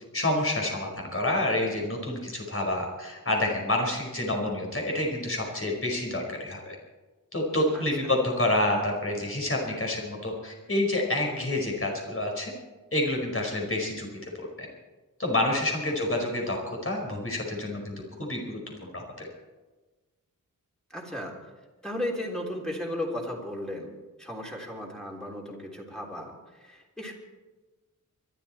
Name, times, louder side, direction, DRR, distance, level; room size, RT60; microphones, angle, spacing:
voice 1, 0.1-6.7 7.3-12.5 12.9-14.7 15.2-16.6 16.8-17.9 18.2-18.6 18.9-19.3, left 1 dB, 40° left, 0 dB, 5.0 m, -28 dB
voice 2, 20.9-21.3 21.8-23.9 24.2-26.3 26.6-27.1, left 1 dB, ahead, -2 dB, 3.5 m, -35 dB
24.5 x 12.0 x 4.4 m, 1.2 s
wide cardioid pair, 100°, 34 cm